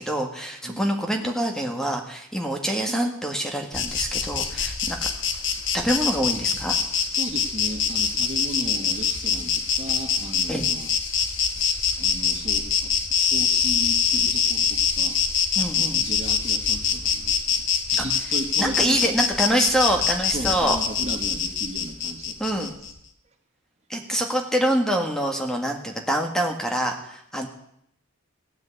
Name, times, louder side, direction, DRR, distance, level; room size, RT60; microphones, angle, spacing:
voice 1, 0.0-5.1 5.7-6.8 10.5-10.7 15.6-16.0 17.9-18.0 18.6-20.8 22.4-22.7 23.9-27.5, right 1 dB, 5° left, 3 dB, 1.8 m, -25 dB
Insect, 3.7-22.9, left 7 dB, 65° left, 1.5 m, -24 dB
voice 2, 7.1-10.9 11.6-12.9 13.3-15.2 15.8-17.6 17.9-19.1 20.3-22.7, right 1 dB, 35° right, 4 dB, 1.6 m, -35 dB
16.5 x 9.5 x 8.2 m, 0.73 s
head